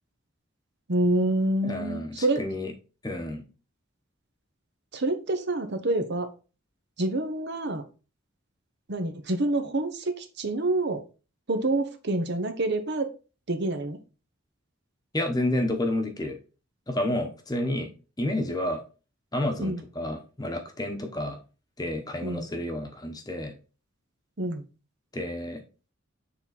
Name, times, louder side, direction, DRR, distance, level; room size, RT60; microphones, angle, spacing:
voice 1, 0.9-2.4 4.9-6.3 7.0-7.8 8.9-11.0 11.5-13.1 13.5-14.0 19.6-19.8 22.2-22.5 24.4-24.6, right 2 dB, 55° right, 8 dB, 0.9 m, -27 dB
voice 2, 1.6-2.7 3.0-3.4 15.1-16.4 16.9-17.9 18.2-18.8 19.3-21.4 21.8-23.5 25.1-25.6, left 1 dB, 20° left, 4 dB, 1.0 m, -30 dB
6.9 x 3.8 x 4.1 m, 0.33 s
head